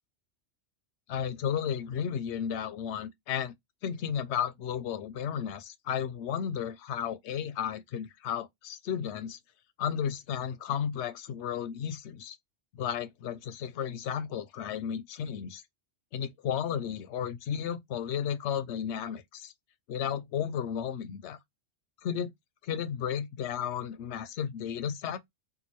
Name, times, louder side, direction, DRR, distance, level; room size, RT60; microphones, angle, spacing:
voice 1, 1.1-3.5 3.8-9.4 9.8-12.4 12.7-15.6 16.1-19.5 19.9-21.4 22.0-22.3 22.6-25.2, left 8 dB, 80° left, 0.9 m, -33 dB
3.6 x 2.4 x 2.9 m
omnidirectional pair, 1.2 m